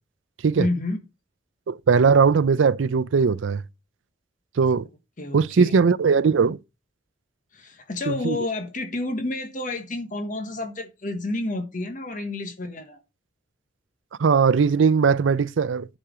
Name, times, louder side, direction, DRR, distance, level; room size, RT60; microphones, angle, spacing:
voice 1, 0.6-1.0 5.2-5.8 7.5-13.0, left 2 dB, 45° left, 1.2 m, -30 dB
voice 2, 1.7-3.6 4.6-4.9 5.3-6.6 8.1-8.4 14.2-16.0, right 5 dB, 85° right, 0.4 m, -19 dB
10.5 x 4.4 x 4.8 m
head